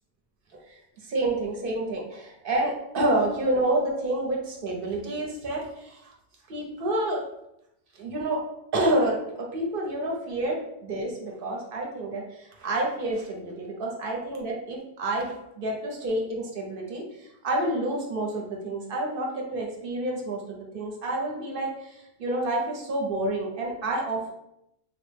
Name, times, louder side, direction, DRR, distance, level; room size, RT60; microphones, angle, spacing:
voice 1, 0.5-6.1 6.5-7.2 8.0-8.4 8.7-24.3, right 1 dB, 55° right, -1 dB, 0.8 m, -29 dB
3.6 x 2.0 x 3.2 m, 0.81 s
omnidirectional pair, 1.3 m